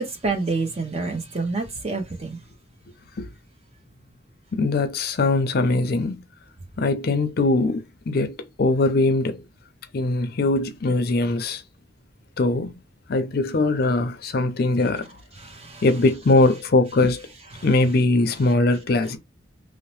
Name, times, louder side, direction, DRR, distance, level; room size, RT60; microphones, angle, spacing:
voice 1, 0.0-2.4 15.4-15.8 17.6-17.7, right 3 dB, 35° right, 0.7 m, -28 dB
voice 2, 4.5-6.2 6.8-9.4 9.9-11.6 12.4-12.8 13.1-15.1 15.8-17.3 17.6-19.2, left 2 dB, 55° left, 0.5 m, -21 dB
2.7 x 2.0 x 3.1 m
head